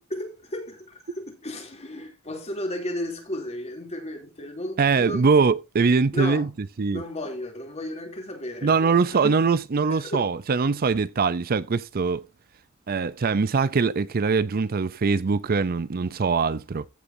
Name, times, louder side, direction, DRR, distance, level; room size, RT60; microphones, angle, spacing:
voice 1, 0.1-5.3 6.1-6.5 6.9-9.3 9.9-10.3, left 1 dB, 30° left, 3.0 m, -34 dB
voice 2, 4.8-6.5 6.8-7.0 8.6-12.2 12.9-16.9, right 4 dB, 45° right, 0.5 m, -22 dB
15.0 x 6.9 x 2.7 m
head